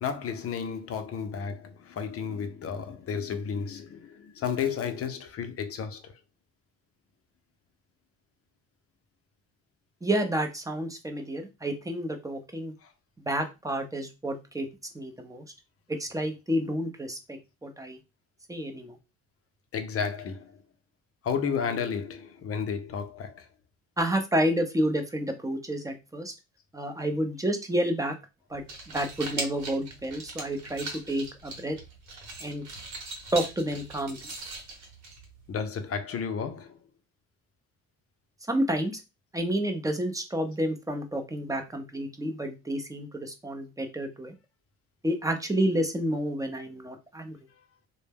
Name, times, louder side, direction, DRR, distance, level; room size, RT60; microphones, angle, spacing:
voice 1, 0.0-6.1 12.8-12.9 19.7-20.6 21.2-23.5 35.5-36.8, left 6 dB, 50° left, 0.6 m, -32 dB
voice 2, 10.0-12.7 13.2-14.7 14.9-15.4 15.9-18.0 18.5-19.0 24.0-26.3 26.7-28.1 28.5-31.8 32.4-32.6 33.3-34.2 38.5-39.0 39.3-44.3 45.0-47.4, right 1 dB, 10° right, 0.6 m, -30 dB
sound 1, 28.5-35.5, right 3 dB, 70° right, 1.0 m, -40 dB
2.1 x 2.1 x 3.4 m
cardioid pair, 90°, 30 cm